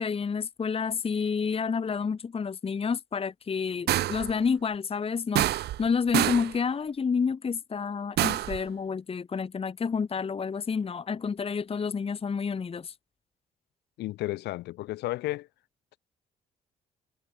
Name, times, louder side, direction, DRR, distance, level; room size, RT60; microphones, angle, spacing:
voice 1, 0.0-12.9, left 5 dB, 35° left, 0.9 m, -29 dB
sound 1, 3.9-4.3 5.4-5.9 6.1-6.5 8.2-8.6, right 14 dB, 70° right, 1.2 m, -26 dB
voice 2, 14.0-15.5, left 17 dB, 80° left, 2.8 m, -32 dB
supercardioid pair, 55°, 17 cm